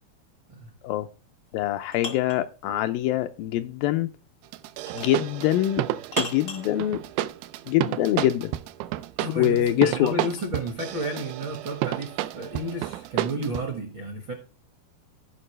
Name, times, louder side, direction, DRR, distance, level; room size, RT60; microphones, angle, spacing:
voice 1, 1.5-4.1 4.9-5.8 6.2-7.0 7.7-8.5 9.4-10.1, left 13 dB, 80° left, 2.2 m, -24 dB
sound 1, 1.5-2.5 4.9-5.2 6.1-6.7 9.0-10.5, left 3 dB, 55° left, 0.9 m, -37 dB
sound 2, 4.5-13.7, right 14 dB, 85° right, 2.4 m, -31 dB
voice 2, 9.2-14.3, right 1 dB, 55° right, 1.3 m, -32 dB
15.5 x 5.4 x 3.2 m
omnidirectional pair, 4.4 m